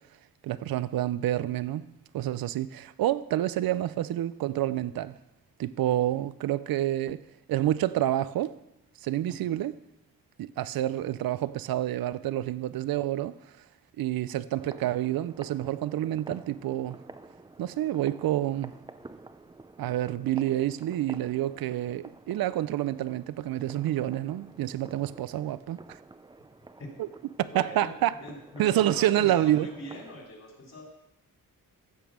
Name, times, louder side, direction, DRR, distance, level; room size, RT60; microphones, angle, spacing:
voice 1, 0.4-1.9 2.1-5.2 5.6-8.5 9.0-9.7 10.4-13.4 14.0-17.0 17.6-18.7 19.8-25.8 27.0-27.1 27.4-28.2 28.6-29.7, right 13 dB, 85° right, 0.5 m, -28 dB
sound 1, 14.6-30.2, right 3 dB, 15° right, 0.4 m, -49 dB
voice 2, 27.5-27.9 28.2-30.8, left 1 dB, 45° left, 3.3 m, -42 dB
14.5 x 5.3 x 6.2 m
wide cardioid pair, 140°, 35 cm